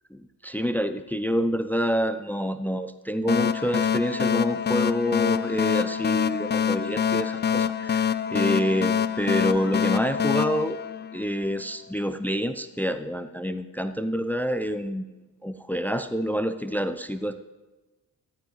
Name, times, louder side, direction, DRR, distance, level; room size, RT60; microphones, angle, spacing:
voice 1, 0.1-10.8 11.1-15.0 15.4-17.4, equal, 5° left, 11 dB, 0.8 m, -27 dB
sound 1, 3.3-11.6, left 8 dB, 25° left, 0.5 m, -25 dB
15.0 x 14.5 x 3.3 m, 1.2 s
hypercardioid pair, 40°, 45 cm